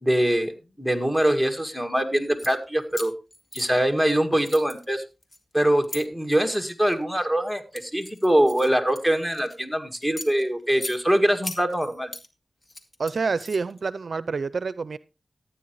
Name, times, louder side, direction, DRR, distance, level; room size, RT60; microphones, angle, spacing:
voice 1, 0.0-3.1 3.5-5.0 5.5-12.1, right 1 dB, 10° left, 6 dB, 2.0 m, -23 dB
sound 1, 2.2-2.5 2.9-4.1 4.4-6.0 6.7-7.0 7.5-9.6 10.0-11.0 11.4-12.3 12.6-13.8, left 1 dB, 45° left, 1.9 m, -39 dB
voice 2, 13.0-15.0, right 4 dB, 70° right, 17 dB, 0.4 m, -27 dB
15.0 x 9.2 x 3.0 m, 0.28 s
cardioid pair, 50°, 0 cm